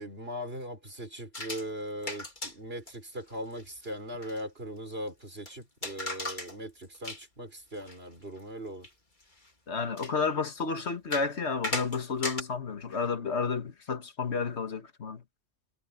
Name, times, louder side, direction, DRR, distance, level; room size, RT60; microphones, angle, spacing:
voice 1, 0.0-8.9, equal, 55° right, 6.2 m, -39 dB
sound 1, 1.3-1.7 2.0-2.5 2.9-3.0 3.3-3.4 3.6-3.9 4.2-4.4 5.5-5.6 5.8-6.6 6.8-7.2 7.7-8.0 8.4-8.5 8.8-8.9 9.5-9.6 10.0-10.1 11.1-11.3 11.6-12.4, left 2 dB, 40° left, 3.1 m, -36 dB
voice 2, 9.7-15.2, left 5 dB, 65° left, 1.9 m, -31 dB
omnidirectional pair, 1.2 m